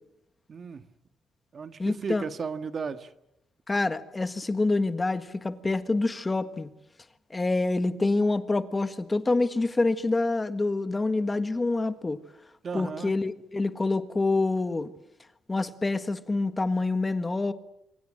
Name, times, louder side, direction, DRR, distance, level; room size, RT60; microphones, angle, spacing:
voice 1, 0.5-0.8 1.5-3.1 12.6-13.1, right 5 dB, 45° right, 10 dB, 1.6 m, -35 dB
voice 2, 1.8-2.2 3.7-6.7 7.3-12.2 12.7-14.9 15.5-17.5, left 2 dB, 20° left, 11 dB, 1.5 m, -26 dB
25.5 x 24.5 x 7.6 m, 0.84 s
cardioid pair, 90°, 0 cm